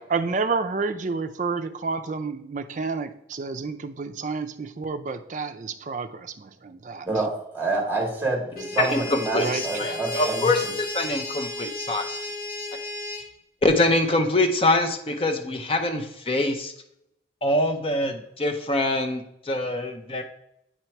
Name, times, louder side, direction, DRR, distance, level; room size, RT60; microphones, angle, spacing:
voice 1, 0.1-7.1 9.4-10.3, right 4 dB, 40° right, 9 dB, 0.4 m, -30 dB
voice 2, 7.0-10.5, right 3 dB, 10° right, -1 dB, 1.4 m, -27 dB
sound 1, 8.5-13.3, left 2 dB, 50° left, 1.1 m, -33 dB
voice 3, 8.8-12.1 13.6-16.7 17.4-20.2, left 2 dB, 30° left, 6 dB, 0.6 m, -24 dB
8.7 x 2.9 x 4.5 m, 0.77 s
head